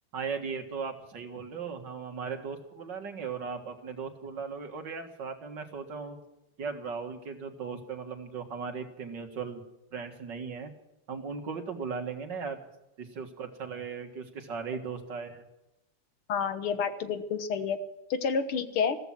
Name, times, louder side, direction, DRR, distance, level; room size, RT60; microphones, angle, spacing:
voice 1, 0.1-6.2 6.6-9.6 9.9-10.7 11.1-12.6 13.0-15.4, right 5 dB, 55° right, 5 dB, 2.4 m, -37 dB
voice 2, 16.3-17.8 18.1-19.0, left 6 dB, 85° left, 9 dB, 2.2 m, -29 dB
15.0 x 15.0 x 6.0 m, 0.91 s
omnidirectional pair, 2.3 m